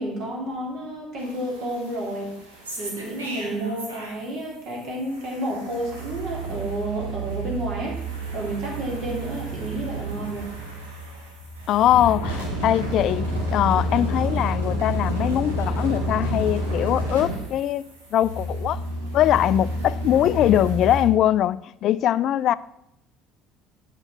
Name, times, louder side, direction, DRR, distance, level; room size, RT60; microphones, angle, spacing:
voice 1, 0.0-2.3 2.8-8.0 8.3-10.5, right 1 dB, 55° right, 3.4 m, -30 dB
sound 1, 1.2-4.4 4.7-21.0, right 1 dB, 85° right, 1.7 m, -30 dB
voice 2, 11.7-17.8 18.1-18.8 19.1-22.5, left 12 dB, 55° left, 0.3 m, -21 dB
8.0 x 5.6 x 7.1 m
figure-of-eight pair, 60°, 0 cm